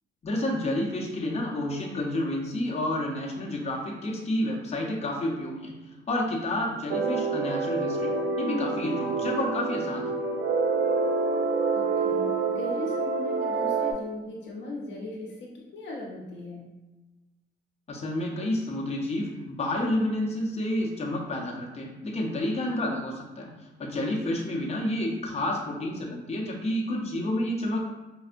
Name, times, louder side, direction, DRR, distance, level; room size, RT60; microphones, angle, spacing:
voice 1, 0.2-10.1 17.9-23.5 23.8-27.8, left 1 dB, 30° left, -2 dB, 0.7 m, -30 dB
sound 1, 6.9-13.9, right 4 dB, 80° right, 0.5 m, -27 dB
voice 2, 11.7-16.7 27.0-27.3, left 2 dB, 65° left, -2 dB, 0.7 m, -39 dB
4.3 x 2.0 x 2.5 m, 1.1 s
cardioid pair, 90°, 20 cm